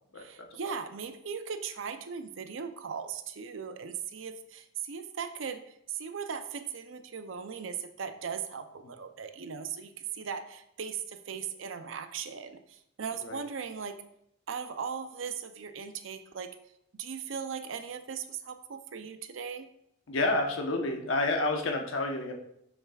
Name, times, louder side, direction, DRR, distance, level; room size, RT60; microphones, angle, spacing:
voice 1, 0.2-14.0 14.5-16.5 16.9-19.7, right 6 dB, 70° right, 8 dB, 0.5 m, -38 dB
voice 2, 20.1-22.3, left 2 dB, 75° left, 3 dB, 1.0 m, -29 dB
7.2 x 6.5 x 2.4 m, 0.76 s
head